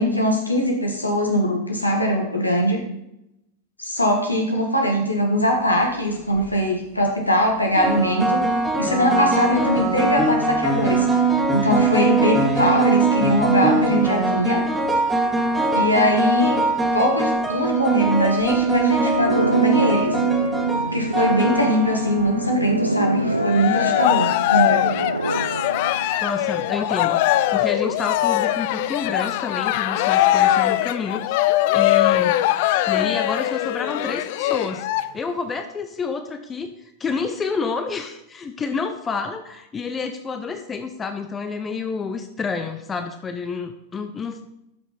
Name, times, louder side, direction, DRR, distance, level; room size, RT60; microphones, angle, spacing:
voice 1, 0.0-2.8 3.8-8.4 8.8-11.2 11.5-14.6 15.7-16.6 16.9-20.1 20.9-24.8, equal, 85° left, 1 dB, 1.7 m, -21 dB
sound 1, 6.1-6.5 7.7-22.6, right 3 dB, 5° right, 2.0 m, -21 dB
sound 2, 19.2-29.6, right 1 dB, 85° right, 0.4 m, -28 dB
Cheering, 23.3-35.0, left 14 dB, 50° left, 0.4 m, -21 dB
voice 2, 26.2-27.2 27.5-32.4 32.9-34.9 35.1-36.7 37.0-44.4, left 5 dB, 20° left, 7 dB, 0.8 m, -29 dB
12.5 x 6.1 x 4.3 m, 0.85 s
figure-of-eight pair, 90°, 0 cm